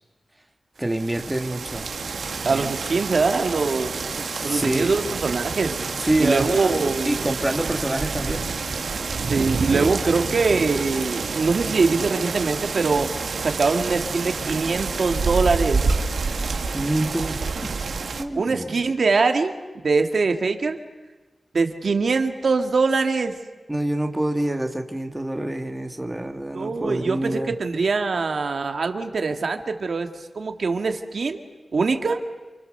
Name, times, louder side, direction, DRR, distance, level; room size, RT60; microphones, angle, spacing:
voice 1, 0.8-1.9 2.4-2.7 4.2-5.0 6.0-8.5 9.3-9.9 16.7-17.7 18.2-18.8 23.7-27.5, right 1 dB, 10° right, 4 dB, 2.0 m, -27 dB
sound 1, 0.9-18.2, right 4 dB, 80° right, 1.9 m, -28 dB
voice 2, 2.5-7.3 9.3-13.1 13.4-15.8 18.3-19.6 19.8-20.8 21.5-23.4 26.5-30.1 30.4-31.4 31.7-32.2, right 4 dB, 65° right, 5 dB, 2.0 m, -23 dB
28.5 x 28.5 x 6.7 m, 1.2 s
wide cardioid pair, 125°, 0 cm